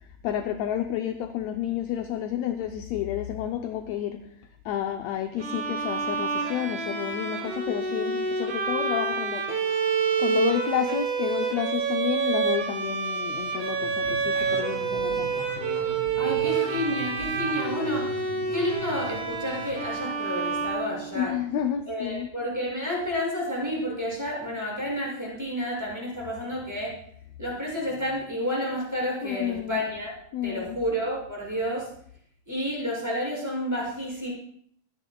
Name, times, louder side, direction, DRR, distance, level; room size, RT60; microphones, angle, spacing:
voice 1, 0.2-4.2 4.6-9.6 10.2-15.3 21.1-22.3 29.2-29.8 30.3-30.7, left 10 dB, 75° left, 5 dB, 1.6 m, -30 dB
Bowed string instrument, 5.4-21.5, right 5 dB, 70° right, 3.7 m, -28 dB
sound 1, 13.6-19.9, right 2 dB, 30° right, 3.0 m, -40 dB
voice 2, 16.2-21.3 21.9-26.9 27.4-30.1 30.4-31.9 32.5-34.3, equal, 5° right, -5 dB, 6.1 m, -30 dB
25.0 x 9.8 x 2.3 m, 0.65 s
omnidirectional pair, 3.8 m